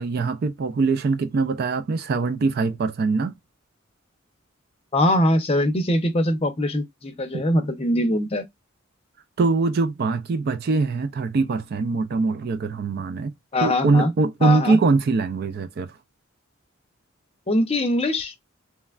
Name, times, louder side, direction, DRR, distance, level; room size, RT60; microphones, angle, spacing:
voice 1, 0.0-3.3 7.3-7.4 9.4-13.3 13.6-15.9, right 3 dB, 50° right, 0.4 m, -22 dB
voice 2, 4.9-8.4 13.5-14.1 14.4-14.8 17.5-18.3, left 1 dB, 30° left, 0.6 m, -22 dB
3.1 x 2.2 x 2.3 m
head